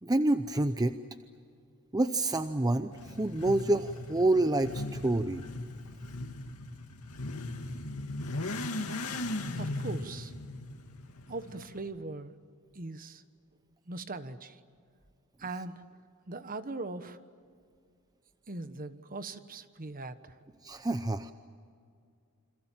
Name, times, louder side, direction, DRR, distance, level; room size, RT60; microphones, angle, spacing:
voice 1, 0.0-0.9 1.9-5.4 20.6-21.3, right 2 dB, 15° right, 9 dB, 0.7 m, -28 dB
Motorcycle / Accelerating revving vroom, 2.9-11.8, left 2 dB, 80° left, 2.4 m, -38 dB
voice 2, 9.5-10.3 11.3-12.3 12.7-13.2 13.9-14.6 15.4-15.8 16.3-17.2 18.5-20.4, right 3 dB, 40° right, 11 dB, 1.2 m, -40 dB
28.5 x 26.5 x 7.4 m, 2.2 s
head